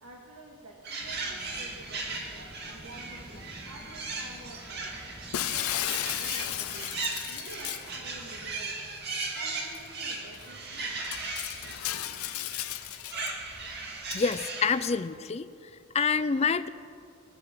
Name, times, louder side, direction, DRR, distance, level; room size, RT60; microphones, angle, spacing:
voice 1, 0.0-4.9 5.4-8.8 9.3-10.9, right 1 dB, 90° right, -2 dB, 2.1 m, -49 dB
sound 1, 0.8-15.0, right 3 dB, 50° right, 2.1 m, -38 dB
sound 2, 1.0-14.5, equal, 25° right, 1.8 m, -52 dB
Shatter, 5.3-8.0 9.8-9.9 10.3-10.5 11.0-13.3 14.1-14.4, left 13 dB, 90° left, 0.5 m, -34 dB
voice 2, 14.1-15.5 15.9-16.7, left 5 dB, 30° left, 14 dB, 0.4 m, -27 dB
20.5 x 7.1 x 8.5 m, 2.5 s
head